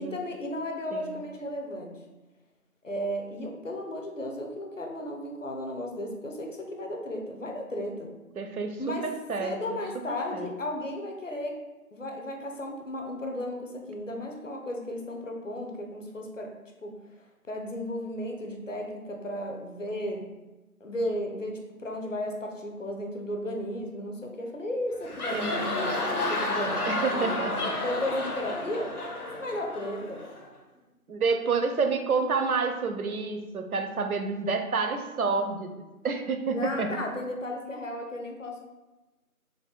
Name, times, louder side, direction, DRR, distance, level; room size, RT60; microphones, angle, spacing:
voice 1, 0.0-2.0 2.8-8.1 8.8-9.1 9.4-11.6 11.9-16.5 16.8-16.9 17.5-20.3 20.8-28.9 29.3-30.2 36.5-38.6, left 1 dB, 60° left, 2 dB, 0.6 m, -34 dB
voice 2, 8.4-9.8 10.3-10.5 25.3-25.8 26.8-27.6 31.1-36.9, right 4 dB, 75° right, 5 dB, 0.6 m, -29 dB
sound 1, 24.9-30.5, left 2 dB, 90° left, 0.8 m, -31 dB
3.4 x 2.3 x 3.8 m, 1.1 s
figure-of-eight pair, 170°, 44 cm